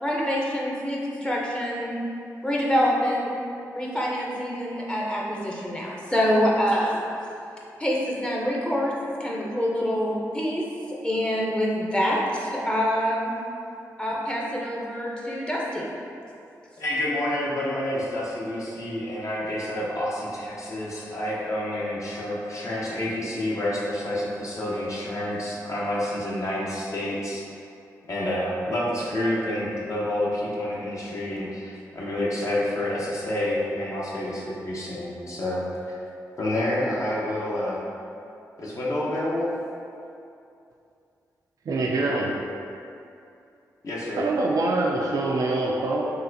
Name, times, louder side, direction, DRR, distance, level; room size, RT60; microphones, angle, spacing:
voice 1, 0.0-2.0 2.4-3.3 3.7-7.0 7.8-13.3 14.0-15.9, equal, 15° left, -4 dB, 0.7 m, -26 dB
voice 2, 16.8-27.4 28.1-36.0 36.4-37.8 38.6-39.5 43.8-44.2, left 1 dB, 50° left, -6 dB, 0.8 m, -28 dB
voice 3, 41.7-42.4 44.2-46.0, right 2 dB, 60° right, -2 dB, 0.3 m, -24 dB
4.0 x 2.4 x 2.6 m, 2.6 s
cardioid pair, 50°, 7 cm